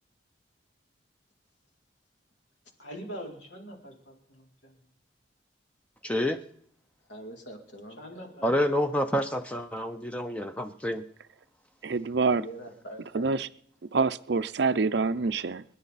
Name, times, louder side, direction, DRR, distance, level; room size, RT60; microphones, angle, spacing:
voice 1, 2.8-4.7 8.0-8.5, equal, 80° left, 0 dB, 4.0 m, -43 dB
voice 2, 6.0-6.4 8.4-11.0, left 1 dB, 5° left, 7 dB, 0.6 m, -28 dB
voice 3, 7.1-8.4 12.4-13.4, right 1 dB, 65° left, 3 dB, 2.5 m, -44 dB
voice 4, 11.8-12.4 13.1-13.5 13.9-15.6, right 4 dB, 60° right, 14 dB, 0.5 m, -26 dB
29.0 x 10.0 x 4.1 m, 0.68 s
head